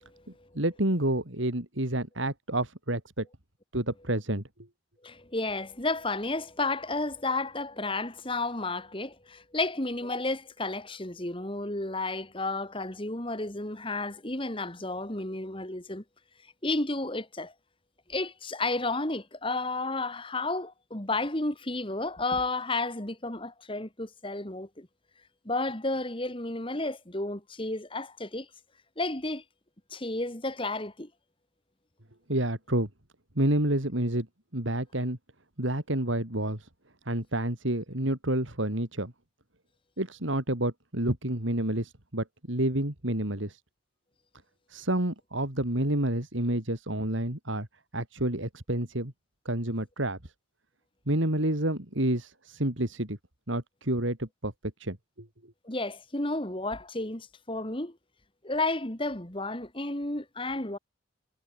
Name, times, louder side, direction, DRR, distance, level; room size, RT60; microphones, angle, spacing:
voice 1, 0.0-0.5 5.0-16.0 16.6-17.5 18.1-24.9 25.5-28.5 29.0-29.4 29.9-31.1 55.6-58.0 58.4-60.8, left 2 dB, 25° left, 2.2 m, -32 dB
voice 2, 0.6-3.3 3.7-4.4 32.3-32.9 33.4-34.3 34.5-35.2 35.6-36.7 37.1-39.1 40.0-43.6 44.7-47.7 47.9-49.1 49.5-50.2 51.1-53.2 53.5-54.5 54.8-55.3, right 1 dB, 75° right, 3.9 m, -29 dB
head